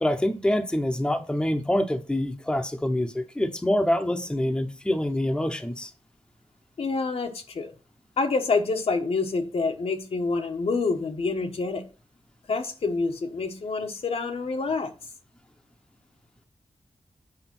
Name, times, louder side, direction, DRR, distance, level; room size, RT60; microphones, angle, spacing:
voice 1, 0.0-5.9, left 1 dB, 10° left, 0.9 m, -26 dB
voice 2, 6.8-7.7 8.2-11.8 12.5-14.9, left 4 dB, 70° left, 1.2 m, -27 dB
8.0 x 4.9 x 6.0 m
wide cardioid pair, 115°, 11 cm